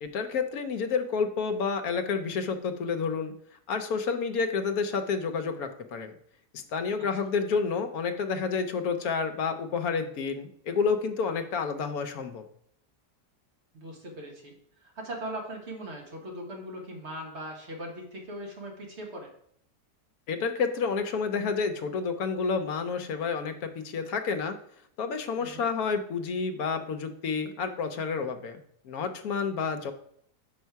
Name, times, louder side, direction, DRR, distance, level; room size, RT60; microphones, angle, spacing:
voice 1, 0.0-3.3 3.7-6.1 6.5-12.4 20.3-24.6 25.0-28.6 28.8-29.9, left 5 dB, 70° left, 7 dB, 1.1 m, -29 dB
voice 2, 13.7-14.5 14.8-19.3 25.4-25.6, right 1 dB, 45° right, 0 dB, 1.5 m, -39 dB
5.7 x 5.4 x 4.6 m, 0.67 s
omnidirectional pair, 1.7 m